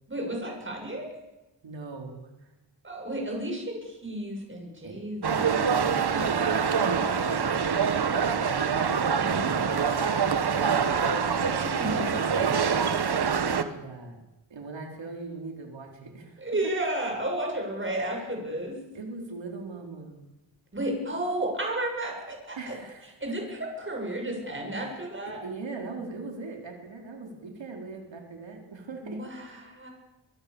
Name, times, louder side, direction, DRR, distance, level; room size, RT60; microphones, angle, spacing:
voice 1, 0.1-1.1 2.8-5.9 9.1-10.1 11.4-12.7 16.4-18.8 20.7-22.8 23.2-25.5 29.0-29.9, right 1 dB, 25° right, 1 dB, 7.3 m, -33 dB
voice 2, 1.6-2.5 4.8-5.0 5.7-8.8 9.2-11.0 13.3-14.2 14.5-16.4 18.1-18.2 18.9-20.2 22.6-23.1 25.3-29.2, right 3 dB, 90° right, 2 dB, 4.3 m, -40 dB
sound 1, 5.2-13.6, right 6 dB, 60° right, 1.5 m, -25 dB
25.0 x 23.5 x 7.1 m, 0.99 s
wide cardioid pair, 165°, 44 cm